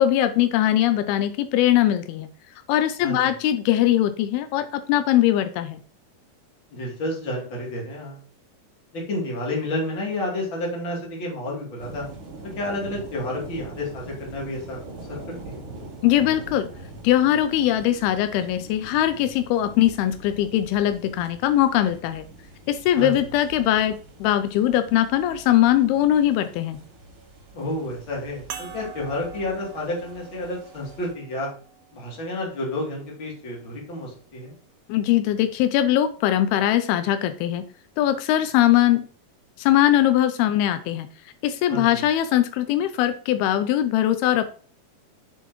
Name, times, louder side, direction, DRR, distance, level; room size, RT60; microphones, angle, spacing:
voice 1, 0.0-2.3 2.7-5.8 16.0-16.7 17.0-22.2 22.7-26.8 34.9-37.7 38.0-39.0 39.6-41.1 41.4-44.5, left 12 dB, 85° left, 10 dB, 2.5 m, -21 dB
voice 2, 6.7-8.2 8.9-12.1 12.6-14.8 15.1-15.2 15.4-15.6 22.9-23.3 27.5-31.5 31.9-34.5 41.7-42.0, left 1 dB, 35° left, -3 dB, 3.2 m, -30 dB
sound 1, 11.8-31.1, right 2 dB, 40° right, 3.1 m, -43 dB
sound 2, 28.5-33.3 34.1-34.2 36.3-36.4, right 8 dB, 70° right, 2.4 m, -44 dB
7.3 x 7.0 x 3.0 m, 0.42 s
omnidirectional pair, 4.4 m